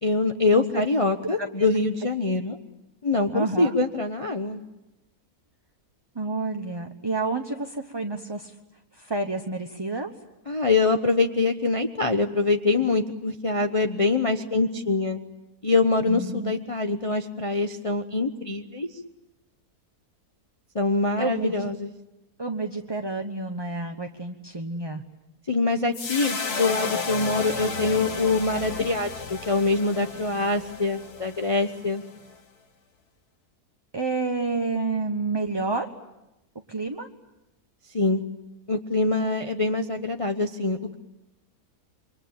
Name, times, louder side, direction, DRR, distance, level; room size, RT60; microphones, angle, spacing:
voice 1, 0.0-2.6 3.0-4.6 10.5-15.2 15.6-19.0 20.7-21.9 25.5-32.0 37.9-38.2 38.7-41.0, left 3 dB, 25° left, 5 dB, 0.9 m, -24 dB
voice 2, 3.3-3.7 6.1-8.5 9.0-10.1 16.1-16.6 21.2-21.5 22.4-25.0 33.9-35.9 36.7-37.1, right 3 dB, 20° right, 4 dB, 1.0 m, -29 dB
sound 1, 25.9-32.3, left 4 dB, 85° left, 2.3 m, -33 dB
27.5 x 24.0 x 8.7 m, 0.97 s
omnidirectional pair, 1.6 m